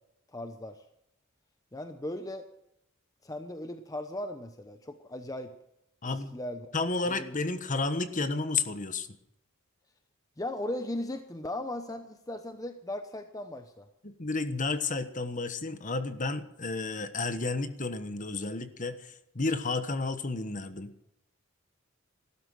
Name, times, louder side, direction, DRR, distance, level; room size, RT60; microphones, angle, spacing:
voice 1, 0.3-0.8 1.7-2.4 3.2-5.5 6.0-6.7 7.1-7.4 10.4-13.9, left 1 dB, 15° left, 7 dB, 0.9 m, -37 dB
voice 2, 6.0-6.3 6.7-9.1 14.0-20.9, left 3 dB, 35° left, 10 dB, 1.3 m, -32 dB
15.0 x 13.0 x 6.4 m, 0.80 s
head